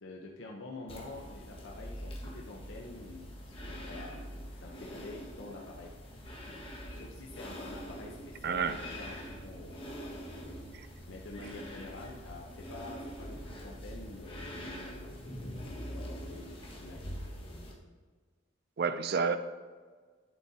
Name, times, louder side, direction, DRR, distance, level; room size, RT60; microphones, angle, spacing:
voice 1, 0.0-5.9 6.9-10.6 11.1-17.0, left 2 dB, 80° left, -1 dB, 0.9 m, -48 dB
sound 1, 0.9-17.7, equal, 30° left, 1.6 m, -44 dB
voice 2, 8.4-8.8 18.8-19.4, right 5 dB, 55° right, 11 dB, 0.4 m, -29 dB
11.0 x 8.0 x 2.8 m, 1.5 s
head